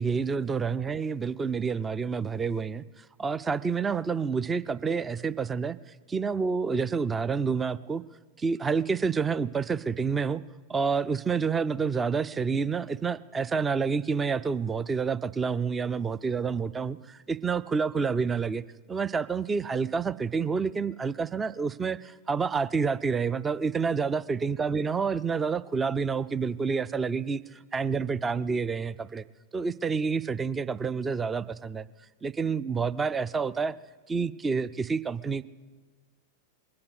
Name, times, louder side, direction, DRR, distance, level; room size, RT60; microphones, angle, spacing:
voice 1, 0.0-5.8 6.1-8.0 8.4-10.4 10.7-18.6 18.9-29.2 29.5-31.9 32.2-33.8 34.1-35.4, right 5 dB, 15° right, 16 dB, 0.4 m, -28 dB
21.0 x 8.6 x 8.1 m, 1.5 s
figure-of-eight pair, 90°, 0 cm